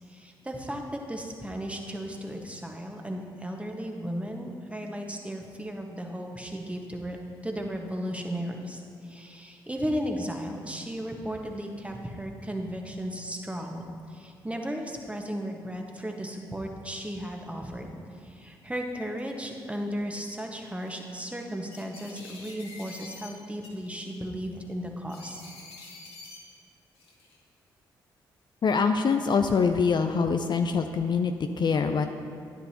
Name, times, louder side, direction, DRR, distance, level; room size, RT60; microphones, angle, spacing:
voice 1, 0.1-7.2 7.4-17.9 18.2-25.4, equal, 10° right, 2 dB, 1.4 m, -35 dB
sound 1, 18.2-18.3 18.9-19.4 20.3-20.4 20.8-21.0 21.7-23.3 23.6-24.2 25.1-26.4 26.9-27.4, left 3 dB, 65° left, 1.8 m, -47 dB
voice 2, 28.6-32.1, left 5 dB, 45° left, 7 dB, 0.5 m, -24 dB
11.0 x 9.9 x 2.9 m, 2.3 s
hypercardioid pair, 40°, 11 cm